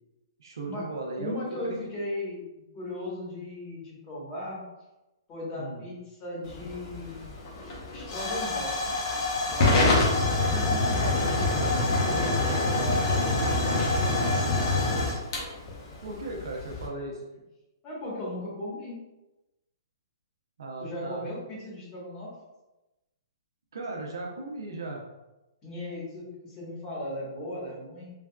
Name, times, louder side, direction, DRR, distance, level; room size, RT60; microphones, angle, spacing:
voice 1, 0.4-1.4 1.6-1.8 5.6-5.8 16.0-17.2 20.6-21.3 23.7-25.0, right 2 dB, 80° right, 0 dB, 0.7 m, -36 dB
voice 2, 1.2-2.4 2.7-4.6 5.3-7.3 7.9-9.0 9.5-13.9 17.8-18.9 20.8-22.3 25.6-28.1, left 1 dB, 25° left, -6 dB, 1.3 m, -37 dB
Hiss / Fire / Tick, 6.5-16.9, left 2 dB, 45° left, 0.8 m, -26 dB
3.4 x 2.3 x 2.3 m, 1.0 s
hypercardioid pair, 140°, 2 cm